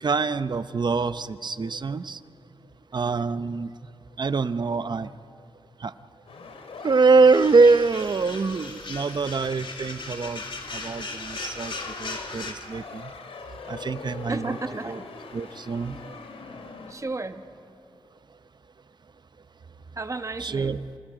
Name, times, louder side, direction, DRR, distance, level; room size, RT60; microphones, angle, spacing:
voice 1, 0.0-2.2 2.9-3.7 4.2-5.1 5.8-5.9 6.8-10.4 10.7-11.7 12.0-13.0 13.7-14.6 14.8-15.0 15.3-16.0 20.4-20.8, right 4 dB, 50° right, 13 dB, 0.7 m, -23 dB
sound 1, 6.3-16.9, left 4 dB, 90° left, 2.3 m, -43 dB
sound 2, 7.3-12.5, left 3 dB, 60° left, 2.8 m, -37 dB
voice 2, 14.3-15.1 16.9-17.4 20.0-20.8, right 3 dB, 35° right, 8 dB, 1.2 m, -33 dB
29.5 x 27.5 x 5.0 m, 2.6 s
wide cardioid pair, 75°, 10 cm